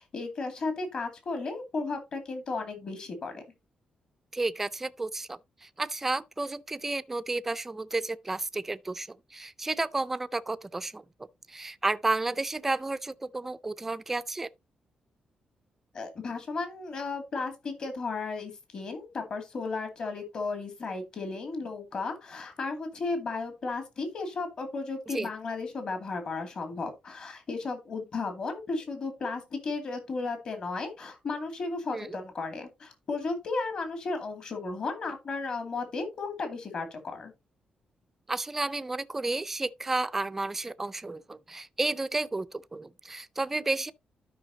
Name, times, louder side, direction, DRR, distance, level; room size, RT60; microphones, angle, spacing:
voice 1, 0.0-3.4 15.9-37.3, left 3 dB, 40° left, 2.3 m, -34 dB
voice 2, 4.3-11.0 11.5-14.5 25.1-25.3 31.9-32.2 38.3-43.9, right 2 dB, 15° right, 0.4 m, -32 dB
12.5 x 5.6 x 2.7 m
wide cardioid pair, 165°, 2 cm